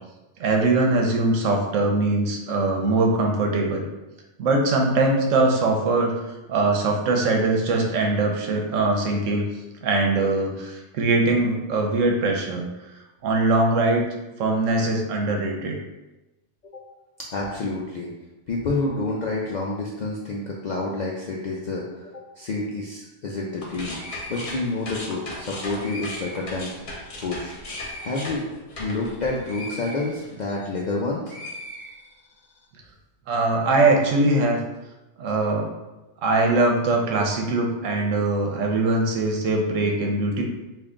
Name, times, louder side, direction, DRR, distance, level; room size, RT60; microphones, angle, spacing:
voice 1, 0.4-3.8 4.4-6.2 6.5-9.5 9.8-12.6 13.2-14.0 14.4-15.8 33.3-34.6 35.2-35.7 36.2-40.4, right 2 dB, 85° right, 1 dB, 1.0 m, -21 dB
voice 2, 17.3-18.1 18.5-24.0 24.3-26.7 27.2-27.6 28.0-28.5 28.8-31.2, left 2 dB, 65° left, -4 dB, 0.4 m, -28 dB
sound 1, 23.5-31.0 31.3-32.4, left 1 dB, 50° left, 0.9 m, -37 dB
3.5 x 2.4 x 3.6 m, 1.0 s
omnidirectional pair, 1.3 m